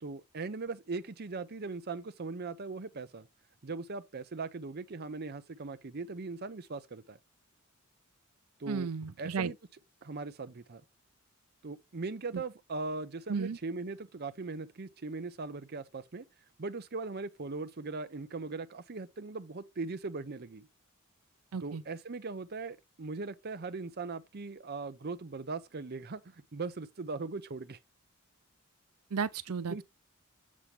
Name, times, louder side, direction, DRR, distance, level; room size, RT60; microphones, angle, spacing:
voice 1, 0.0-3.3 3.6-7.2 8.6-8.9 9.2-9.5 10.0-10.8 11.6-16.3 16.6-20.7 21.6-27.8 29.7-29.8, right 3 dB, 45° right, 0.7 m, -39 dB
voice 2, 8.7-9.5 12.3-12.4 13.3-13.6 21.5-21.8 29.1-29.8, right 5 dB, 85° right, 0.6 m, -34 dB
7.4 x 5.6 x 3.3 m
head